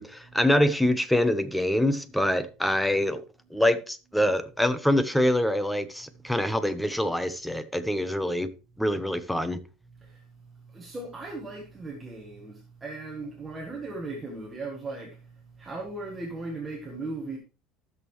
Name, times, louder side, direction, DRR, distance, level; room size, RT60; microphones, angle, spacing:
voice 1, 0.0-3.2 3.5-8.5 8.8-9.6, left 1 dB, ahead, 0.6 m, -25 dB
voice 2, 9.9-17.4, right 2 dB, 15° right, 1.3 m, -38 dB
14.0 x 6.4 x 3.1 m
cardioid pair, 165°, 0 cm